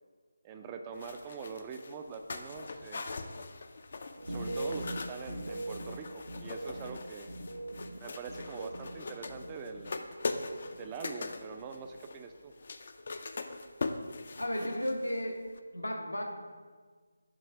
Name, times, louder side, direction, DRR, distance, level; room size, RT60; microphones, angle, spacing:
voice 1, 0.4-3.3 4.3-7.3 8.0-10.0 10.7-12.5, right 5 dB, 20° right, 5 dB, 0.3 m, -44 dB
sound 1, 1.0-15.3 15.6-15.7, left 3 dB, 50° left, 0.4 m, -41 dB
sound 2, 4.2-10.0 10.3-11.0 11.3-11.7, right 1 dB, 85° right, 0.7 m, -41 dB
voice 2, 14.4-15.4 15.7-16.2, equal, 85° left, 1 dB, 1.1 m, -33 dB
7.5 x 3.1 x 5.7 m, 1.5 s
figure-of-eight pair, 155°, 0 cm